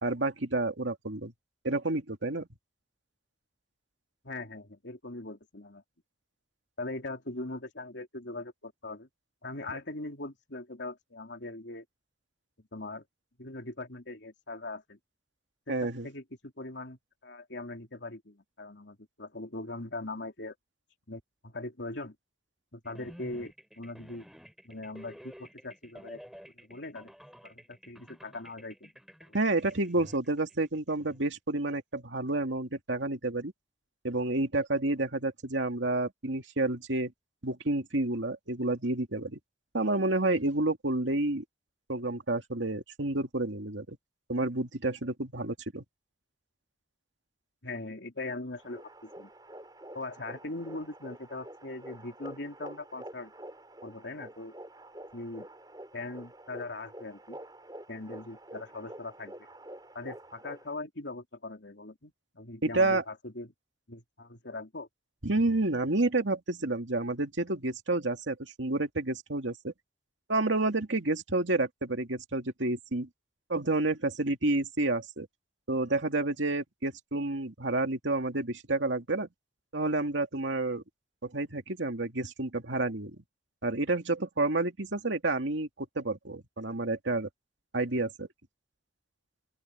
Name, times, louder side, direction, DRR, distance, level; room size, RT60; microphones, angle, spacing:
voice 1, 0.0-1.3 1.6-2.5 15.7-16.1 29.3-33.5 34.0-37.1 37.4-39.4 39.7-41.4 41.9-44.0 44.3-45.8 62.6-63.0 65.2-69.7 70.3-73.1 73.5-75.3 75.7-79.3 79.7-80.8 81.2-83.1 83.6-87.3 87.7-88.3, right 2 dB, 90° right, 2.4 m, -30 dB
voice 2, 4.2-5.8 6.8-9.1 9.4-11.8 12.7-13.0 13.4-15.0 15.7-20.5 21.1-22.1 22.7-24.3 24.6-26.2 26.6-27.1 27.4-28.9 29.3-29.4 47.6-49.3 49.9-53.3 53.8-54.5 55.1-55.5 55.9-57.4 57.9-59.3 59.9-63.5 63.9-64.9, left 2 dB, 75° left, 3.3 m, -41 dB
sound 1, 22.8-31.2, equal, ahead, 6.8 m, -51 dB
sound 2, 48.6-60.7, right 1 dB, 20° right, 3.9 m, -48 dB
open air
head